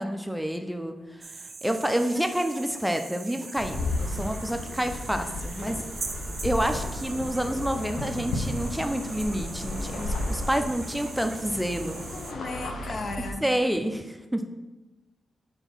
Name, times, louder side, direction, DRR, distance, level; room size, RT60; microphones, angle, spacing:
voice 1, 0.0-5.8 6.4-12.0 13.4-14.5, right 1 dB, 5° right, 6 dB, 0.5 m, -29 dB
sound 1, 1.2-12.3, right 4 dB, 45° right, 0.6 m, -41 dB
sound 2, 3.5-13.3, left 2 dB, 85° left, 0.8 m, -34 dB
voice 2, 12.1-13.5, left 3 dB, 50° left, 6 dB, 0.6 m, -36 dB
4.5 x 4.0 x 5.4 m, 1.1 s
cardioid pair, 75°, 0 cm